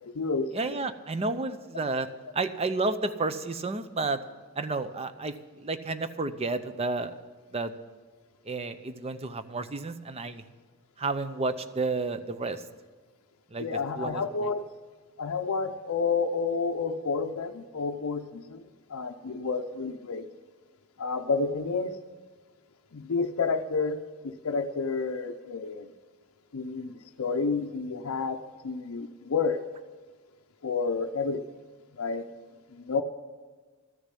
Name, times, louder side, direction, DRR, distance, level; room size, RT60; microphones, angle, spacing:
voice 1, 0.0-0.8 13.6-14.6 15.2-20.3 21.0-22.0 22.9-25.9 26.5-29.6 30.6-31.6 31.9-32.3 32.7-33.0, left 4 dB, 75° left, 3 dB, 0.5 m, -30 dB
voice 2, 0.5-2.1 2.3-4.2 4.6-7.1 7.5-7.7 8.5-10.4 11.0-12.6 13.5-13.7 14.0-14.5, right 3 dB, 30° right, 11 dB, 0.6 m, -31 dB
13.5 x 6.5 x 9.8 m, 1.4 s
head